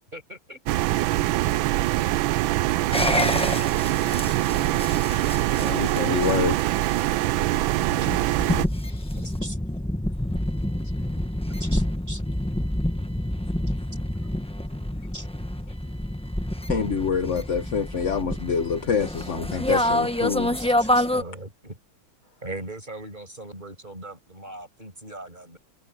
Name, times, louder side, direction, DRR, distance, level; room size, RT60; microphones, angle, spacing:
voice 1, 0.1-0.6 9.2-9.6 11.6-12.2 15.1-15.3 20.6-21.8 22.4-25.6, right 1 dB, 20° right, 7.7 m, -40 dB
sound 1, 0.7-8.7, right 16 dB, 80° right, 1.3 m, -23 dB
sound 2, 2.9-21.2, left 1 dB, 5° left, 0.6 m, -28 dB
voice 2, 4.8-6.4 6.9-9.2 10.0-10.4 14.4-14.5 14.9-15.1, left 4 dB, 70° left, 5.3 m, -54 dB
voice 3, 5.6-6.6 16.7-20.5, left 6 dB, 45° left, 1.2 m, -26 dB
omnidirectional pair, 2.3 m